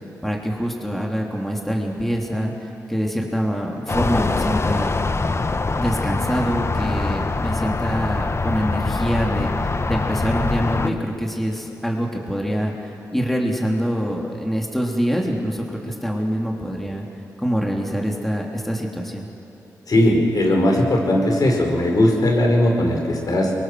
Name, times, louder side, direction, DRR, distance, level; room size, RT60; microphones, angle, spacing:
voice 1, 0.2-4.9 5.7-9.5 9.9-17.0 17.4-19.3, equal, 5° left, -1 dB, 3.2 m, -25 dB
sound 1, 3.9-10.9, left 3 dB, 35° left, 1.0 m, -23 dB
voice 2, 19.9-23.5, left 1 dB, 60° left, 1 dB, 5.2 m, -18 dB
24.0 x 23.0 x 6.4 m, 2.8 s
supercardioid pair, 40°, 7 cm